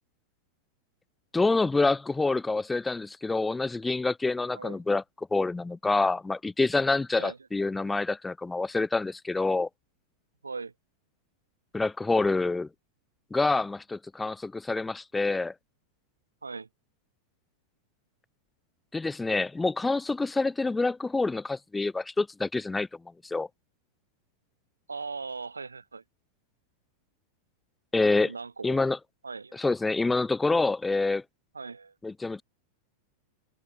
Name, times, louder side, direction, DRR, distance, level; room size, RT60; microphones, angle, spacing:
voice 1, 1.3-5.0 5.3-9.7 11.7-12.7 13.3-15.5 18.9-22.9 23.2-23.5 27.9-28.3 28.6-29.0 29.5-31.2 32.0-32.4, left 3 dB, 10° left, 2.6 m, -27 dB
voice 2, 24.9-26.0 28.2-28.8 29.2-29.6 31.5-31.9, right 4 dB, 75° right, 4.3 m, -39 dB
figure-of-eight pair, 90°, 0 cm